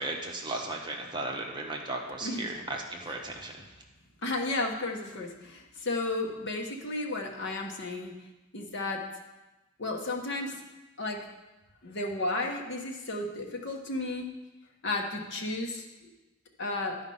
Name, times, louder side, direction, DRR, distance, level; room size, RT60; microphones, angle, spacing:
voice 1, 0.0-3.6, right 2 dB, 20° right, 1 dB, 1.0 m, -35 dB
voice 2, 4.2-8.1 8.5-9.0 9.8-10.6 11.0-11.3 11.8-14.3 14.8-16.1 16.6-17.0, left 2 dB, 60° left, 1 dB, 1.2 m, -33 dB
11.5 x 5.0 x 5.5 m, 1.1 s
head